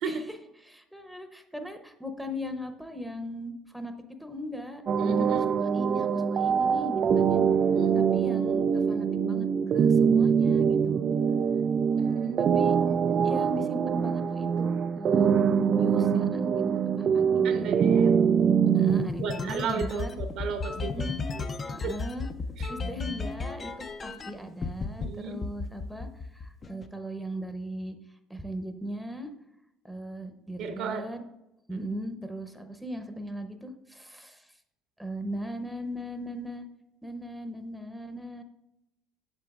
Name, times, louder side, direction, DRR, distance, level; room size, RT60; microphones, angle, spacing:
voice 1, 0.0-0.4 0.6-3.9 4.2-4.8 5.2-7.4 7.9-9.5 9.7-11.1 12.4-12.7 13.2-15.3 15.7-16.7 17.0-17.9 18.7-20.2 20.7-21.2 21.7-22.3 22.7-28.0 28.3-29.3 29.8-31.2 31.7-34.5 35.0-36.6 37.0-38.4, equal, ahead, 6 dB, 0.8 m, -38 dB
sound 1, 4.9-19.1, right 7 dB, 45° right, 0.3 m, -24 dB
voice 2, 4.9-5.5 7.8-8.0 12.0-12.6 17.4-18.1 19.2-21.1 21.3-21.4 21.8-21.9 22.6-22.7 25.0-25.4 30.6-31.0 31.7-31.8, right 5 dB, 65° right, 6 dB, 0.9 m, -34 dB
sound 2, 18.9-24.3 24.6-25.1 25.4-26.9, left 4 dB, 35° left, 0.6 m, -34 dB
7.9 x 6.7 x 2.5 m, 0.89 s
hypercardioid pair, 70°, 0 cm